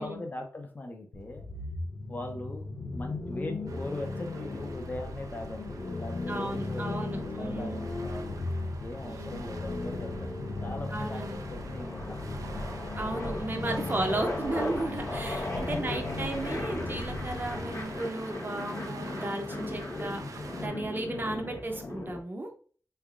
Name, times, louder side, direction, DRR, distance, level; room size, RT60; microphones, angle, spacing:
voice 1, 0.0-1.4 2.1-2.7 2.9-10.3 10.6-12.7 15.7-16.0 21.2-21.4, left 2 dB, 30° left, 3 dB, 0.7 m, -40 dB
sound 1, 1.1-18.0, left 2 dB, 90° left, 0.7 m, -37 dB
sound 2, 3.7-20.7, right 4 dB, 80° right, 0.4 m, -48 dB
sound 3, 4.3-5.4 7.3-8.5 9.5-10.0 10.3-22.2, left 2 dB, 65° left, 0.9 m, -38 dB
voice 2, 6.3-7.8 9.0-9.4 10.9-11.4 13.0-20.2 20.6-22.5, right 2 dB, 35° right, 3 dB, 0.7 m, -34 dB
3.5 x 3.3 x 2.4 m, 0.43 s
wide cardioid pair, 115°, 6 cm